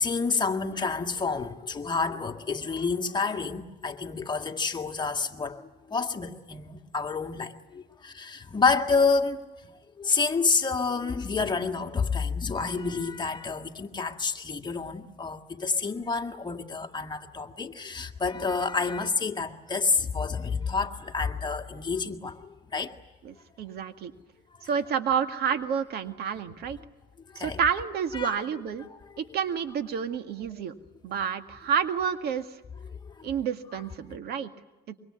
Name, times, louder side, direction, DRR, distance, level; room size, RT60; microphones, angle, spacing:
voice 1, 0.0-5.6 5.9-9.5 10.0-23.0 27.3-27.6 28.1-28.4 28.9-29.0 33.0-33.3, left 4 dB, 25° left, 1.8 m, -29 dB
voice 2, 23.2-24.1 24.6-26.8 27.4-28.8 29.2-30.7 31.0-32.5 33.2-34.5, right 7 dB, 70° right, 2.0 m, -29 dB
25.0 x 23.5 x 9.8 m
cardioid pair, 110°, 17 cm